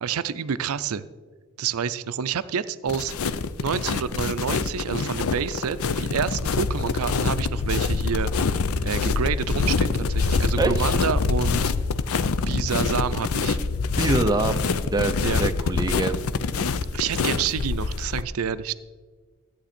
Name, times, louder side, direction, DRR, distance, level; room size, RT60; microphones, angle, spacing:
voice 1, 0.0-1.1 1.6-8.3 8.8-11.7 12.5-13.6 15.2-15.4 16.9-18.7, right 7 dB, 80° right, 14 dB, 0.5 m, -28 dB
sound 1, 2.9-18.2, left 4 dB, 75° left, 0.5 m, -25 dB
voice 2, 10.6-10.9 14.0-16.2, right 2 dB, 20° right, 6 dB, 0.5 m, -25 dB
14.5 x 8.9 x 4.3 m, 1.4 s
head